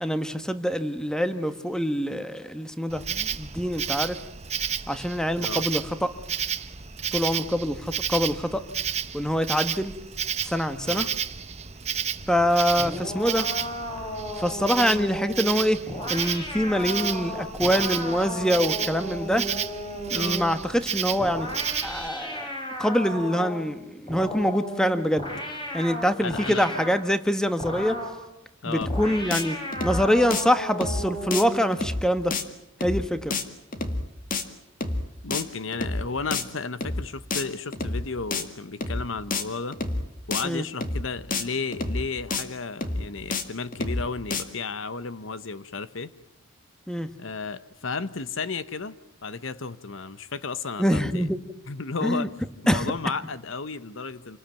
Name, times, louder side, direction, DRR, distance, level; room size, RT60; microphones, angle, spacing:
voice 1, 0.0-4.2 4.9-6.1 7.1-8.6 9.1-9.9 10.4-11.0 12.3-13.5 14.4-15.8 16.1-19.5 20.1-21.5 21.8-22.5 22.8-25.3 25.7-28.0 28.7-29.6 29.8-32.3 32.8-33.3 40.4-40.6 46.9-47.1 50.8-51.4 52.0-52.3 52.7-52.8, equal, 5° left, 10 dB, 1.3 m, -25 dB
Insect, 2.9-22.1, right 8 dB, 30° right, 1.0 m, -32 dB
sound 1, 12.8-20.6 21.2-23.7 24.1-27.0 27.6-28.2 28.9-31.7, equal, 25° left, 5.2 m, -34 dB
voice 2, 26.2-26.7 28.6-28.9 35.2-39.8 40.3-46.1 47.2-51.3 51.7-52.3 52.6-54.4, left 4 dB, 70° left, 14 dB, 1.0 m, -33 dB
sound 2, 28.8-29.0 29.3-29.4 29.7-30.0 30.3-30.4 30.8-31.0 31.3-31.4 31.7-32.0 32.3-32.4 32.8-33.0 33.3-33.4 33.7-34.0 34.3-34.4 34.8-35.0 35.3-35.4 35.7-36.0 36.3-36.4 36.8-37.0 37.3-37.4 37.7-38.0 38.3-38.4 38.8-39.0 39.3-39.4 39.7-40.0 40.3-40.4 40.8-41.0 41.3-41.4 41.7-42.0 42.3-42.4 42.8-43.0 43.3-43.4 43.7-44.0 44.3-44.4, left 3 dB, 40° left, 2.0 m, -28 dB
28.0 x 20.0 x 9.1 m, 0.82 s
head